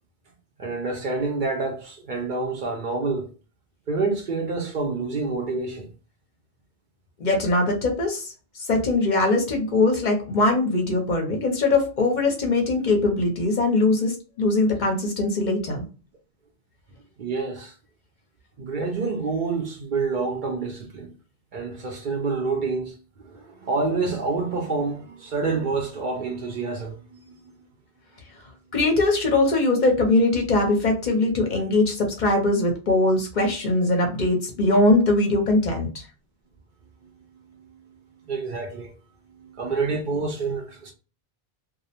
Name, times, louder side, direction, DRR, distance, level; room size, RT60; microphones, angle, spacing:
voice 1, 0.6-3.3 3.9-5.9 17.2-17.7 18.6-21.1 21.5-23.0 23.2-27.7 37.0-38.9 39.3-40.9, right 4 dB, 60° right, 0.6 m, -28 dB
voice 2, 7.2-15.8 28.7-36.1, left 2 dB, 55° left, 0.6 m, -21 dB
2.4 x 2.0 x 2.7 m
omnidirectional pair, 1.1 m